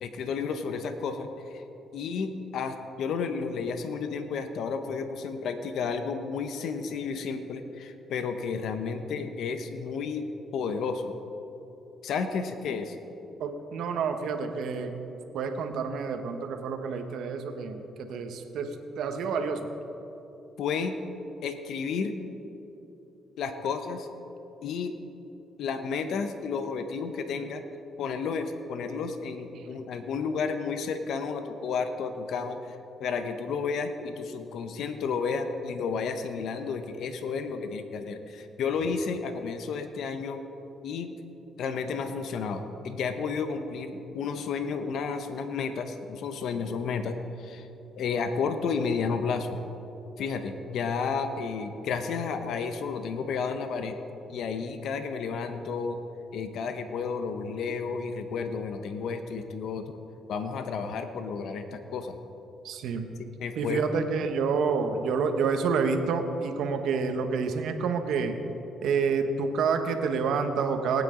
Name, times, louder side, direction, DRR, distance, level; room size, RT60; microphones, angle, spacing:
voice 1, 0.0-1.6 1.9-10.3 10.5-11.1 12.0-13.0 20.6-21.0 21.4-22.2 23.4-24.1 24.6-24.9 25.6-27.6 28.0-40.4 40.8-41.1 41.6-47.7 48.0-49.6 50.2-54.0 54.3-56.0 56.3-59.9 60.3-62.2 63.4-63.8, left 5 dB, 75° left, 8 dB, 0.8 m, -32 dB
voice 2, 13.4-15.0 15.3-19.7 29.5-29.7 62.6-63.1 63.6-68.4 68.8-71.0, right 5 dB, 80° right, 6 dB, 1.0 m, -28 dB
19.5 x 9.0 x 3.8 m, 3.0 s
cardioid pair, 90°, 0 cm